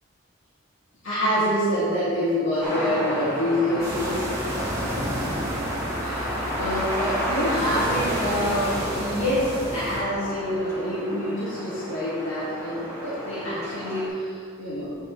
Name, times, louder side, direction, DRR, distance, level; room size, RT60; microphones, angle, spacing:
voice 1, 1.0-4.3 6.0-14.9, equal, 80° left, -10 dB, 2.1 m, -26 dB
sound 1, 2.6-14.1, equal, 15° left, 2.0 m, -32 dB
Waves on shale beech. Distant low boat engine in background., 3.8-10.0, right 1 dB, 15° right, 2.0 m, -31 dB
9.7 x 7.9 x 3.2 m, 2.2 s
head